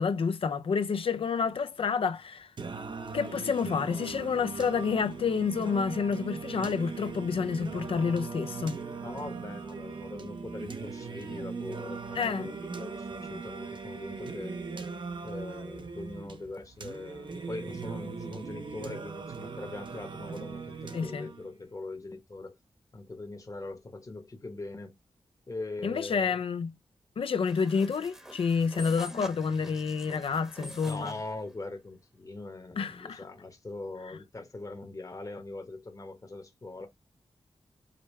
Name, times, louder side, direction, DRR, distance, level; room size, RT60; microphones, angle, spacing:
voice 1, 0.0-2.5 3.1-8.8 12.2-12.5 20.9-21.3 25.8-26.7 27.2-31.1 32.8-33.2, left 5 dB, 65° left, 0.5 m, -29 dB
Singing, 2.6-21.6, right 4 dB, 50° right, 0.7 m, -40 dB
voice 2, 9.0-14.6 15.2-22.6 22.9-24.9 25.5-26.4 30.9-36.9, left 2 dB, 35° left, 1.0 m, -41 dB
sound 1, 27.5-31.3, equal, 5° right, 0.9 m, -46 dB
5.1 x 2.2 x 3.1 m
cardioid pair, 65°, 10 cm